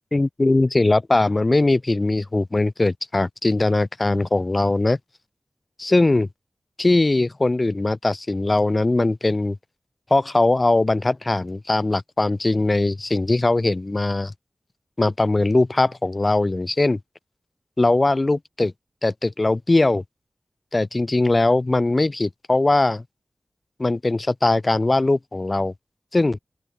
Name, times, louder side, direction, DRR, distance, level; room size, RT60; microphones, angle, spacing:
voice 1, 0.1-5.0 5.8-6.3 6.8-9.6 10.1-14.3 15.0-17.0 17.8-18.7 19.0-20.0 20.7-23.0 23.8-25.7 26.1-26.4, left 2 dB, 40° left, 1.9 m, -20 dB
open air
wide cardioid pair, 60°, 0 cm